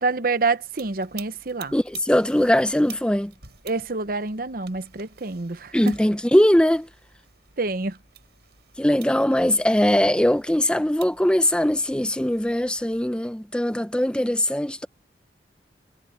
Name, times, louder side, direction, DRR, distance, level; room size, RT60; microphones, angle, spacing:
voice 1, 0.0-1.7 3.6-6.0 7.6-8.0, right 3 dB, 55° right, 0.9 m, -27 dB
sound 1, 0.7-13.1, right 9 dB, 70° right, 6.9 m, -50 dB
voice 2, 1.7-3.3 5.7-6.9 8.8-14.9, left 1 dB, 5° left, 0.6 m, -21 dB
head